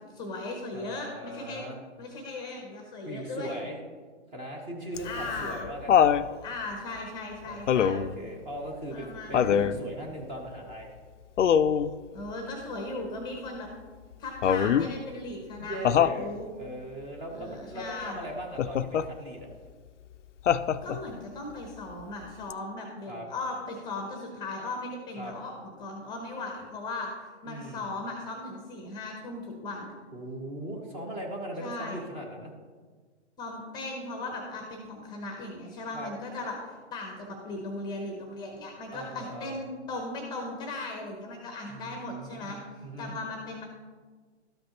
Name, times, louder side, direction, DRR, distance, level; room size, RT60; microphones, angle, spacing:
voice 1, 0.1-1.6 2.0-3.6 5.0-5.7 6.4-8.1 8.9-9.7 12.1-13.7 14.2-16.5 17.3-18.2 20.8-25.5 25.8-29.9 31.6-32.0 33.4-42.6 43.0-43.6, left 2 dB, 10° left, 2 dB, 0.8 m, -37 dB
voice 2, 0.7-1.8 3.0-3.8 4.3-6.2 7.4-11.0 15.6-19.5 23.1-23.3 25.2-25.3 27.5-27.8 30.1-32.5 35.9-36.1 38.9-39.6 41.7-43.2, right 1 dB, 15° right, 0 dB, 0.9 m, -39 dB
Laughter, 5.0-6.3 7.7-8.2 9.3-9.8 11.4-11.9 14.4-14.9 15.8-16.2 18.6-19.1 20.5-21.1 22.5-22.6, left 8 dB, 85° left, 0.5 m, -23 dB
12.5 x 5.2 x 2.9 m, 1.5 s
hypercardioid pair, 140°, 35 cm